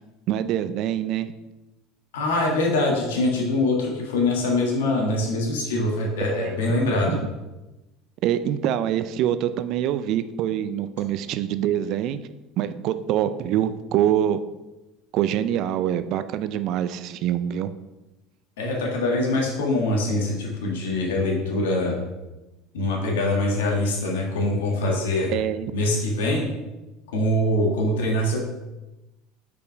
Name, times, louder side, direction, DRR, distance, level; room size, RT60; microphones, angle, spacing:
voice 1, 0.3-1.3 6.3-6.5 7.1-7.2 8.2-12.2 12.6-14.4 15.1-17.7 25.3-25.7, right 11 dB, 60° right, 12 dB, 0.4 m, -25 dB
voice 2, 2.1-7.2 18.6-22.0 22.7-25.3 25.7-26.5 27.1-28.4, left 2 dB, 80° left, -2 dB, 1.5 m, -23 dB
5.2 x 4.9 x 4.6 m, 1.0 s
hypercardioid pair, 85°, 0 cm